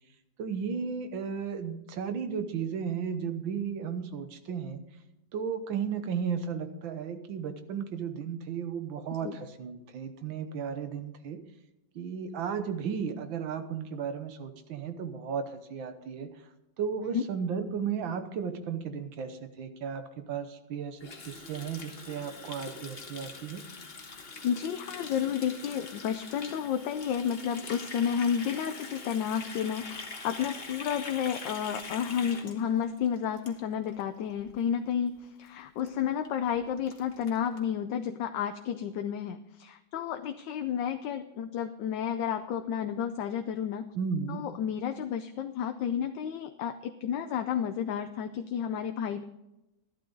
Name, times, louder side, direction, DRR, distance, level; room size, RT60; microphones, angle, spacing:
voice 1, 0.4-4.8 5.3-11.4 12.0-16.3 16.8-21.0 21.3-23.6 44.0-44.5, right 6 dB, 90° right, 9 dB, 1.8 m, -34 dB
Water tap faucet, 21.0-34.0 34.3-34.5 34.8-35.2 35.5-35.6 35.8-35.9 36.2-36.3 36.5-37.6, left 4 dB, 35° left, 1.4 m, -44 dB
voice 2, 24.1-43.9 44.3-49.2, left 8 dB, 75° left, 8 dB, 1.3 m, -31 dB
12.5 x 11.5 x 3.9 m, 0.94 s
omnidirectional pair, 2.0 m